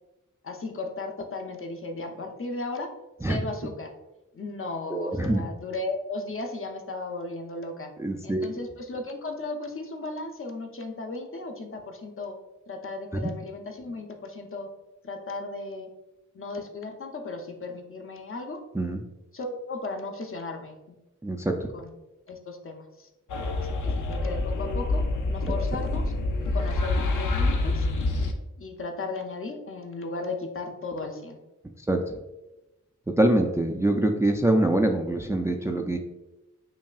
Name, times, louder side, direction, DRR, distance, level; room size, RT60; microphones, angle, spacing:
voice 1, 0.4-2.9 3.2-3.9 4.3-7.9 8.2-12.4 12.7-14.7 15.0-15.9 16.3-18.6 19.3-21.0 21.7-21.9 22.3-23.1 23.5-26.1 26.5-27.9 28.6-31.4, left 3 dB, 45° left, 4 dB, 0.6 m, -35 dB
voice 2, 4.9-5.4 8.0-8.5 18.8-19.0 21.2-21.7 31.9-32.0 33.2-36.0, right 1 dB, 10° right, 4 dB, 0.3 m, -24 dB
sound 1, 23.3-28.3, left 2 dB, 85° left, 0.5 m, -27 dB
5.4 x 2.3 x 2.3 m, 1.0 s
cardioid pair, 45°, 30 cm